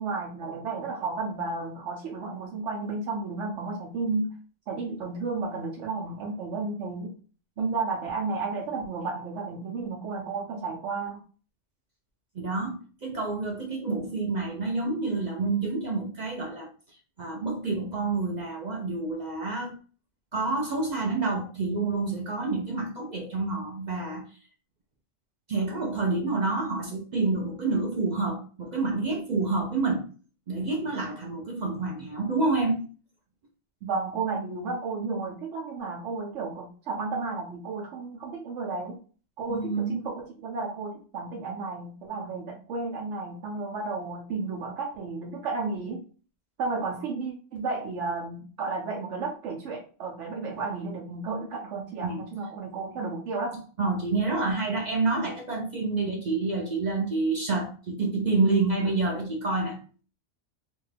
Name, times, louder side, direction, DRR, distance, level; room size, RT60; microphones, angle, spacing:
voice 1, 0.0-4.3 4.7-7.1 7.6-11.2 33.8-39.0 39.4-46.0 46.6-53.6, right 3 dB, 75° right, 1.0 m, -33 dB
voice 2, 12.4-16.7 17.2-19.8 20.3-24.2 25.5-30.1 30.5-32.8 39.5-40.0 52.0-52.2 53.8-59.8, right 3 dB, 55° right, 0.5 m, -28 dB
2.5 x 2.3 x 3.2 m
omnidirectional pair, 1.2 m